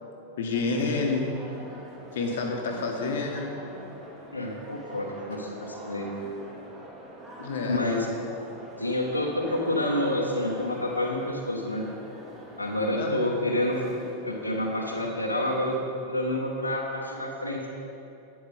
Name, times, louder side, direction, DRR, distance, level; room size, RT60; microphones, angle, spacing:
voice 1, 0.4-1.3 2.1-3.5 7.4-7.8 13.0-13.2, left 3 dB, 60° left, 1 dB, 1.2 m, -29 dB
sound 1, 0.5-15.8, equal, 25° right, 2.6 m, -44 dB
voice 2, 4.3-6.1 7.6-8.1 8.8-11.9 12.6-17.7, left 1 dB, 85° left, -2 dB, 1.2 m, -28 dB
11.0 x 9.1 x 3.9 m, 2.7 s
figure-of-eight pair, 90°, 0 cm